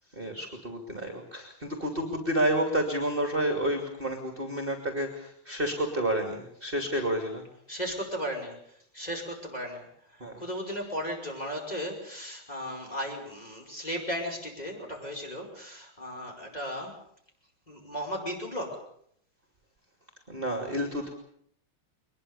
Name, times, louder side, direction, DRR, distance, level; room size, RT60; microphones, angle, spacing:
voice 1, 0.2-7.4 10.2-10.3 20.3-21.1, right 1 dB, 25° right, 4 dB, 2.9 m, -30 dB
voice 2, 7.7-17.0 17.7-18.9, equal, 20° left, 1 dB, 5.6 m, -36 dB
23.0 x 21.5 x 7.0 m, 0.66 s
omnidirectional pair, 2.3 m